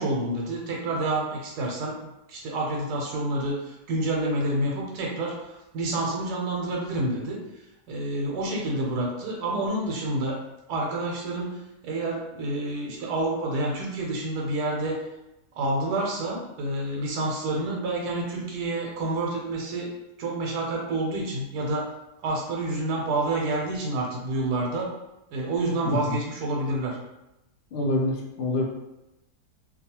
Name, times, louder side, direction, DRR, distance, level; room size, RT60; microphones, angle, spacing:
voice 1, 0.0-7.4 7.9-10.4 10.7-15.0 15.5-19.9 20.2-21.9 22.2-24.9 25.3-27.0, right 2 dB, 85° right, -2 dB, 1.2 m, -28 dB
voice 2, 27.7-28.7, left 1 dB, 75° left, -1 dB, 0.6 m, -26 dB
2.7 x 2.3 x 2.8 m, 0.93 s
omnidirectional pair, 1.7 m